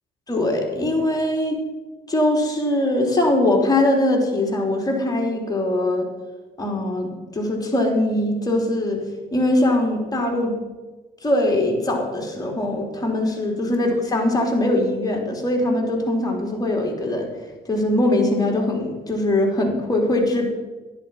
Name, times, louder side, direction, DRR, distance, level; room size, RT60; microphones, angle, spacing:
voice 1, 0.3-1.6 2.1-6.0 6.6-9.0 9.3-10.5 11.2-17.3 17.6-20.5, left 1 dB, 20° left, 0 dB, 3.3 m, -21 dB
11.5 x 10.5 x 5.6 m, 1.3 s
cardioid pair, 90°, 20 cm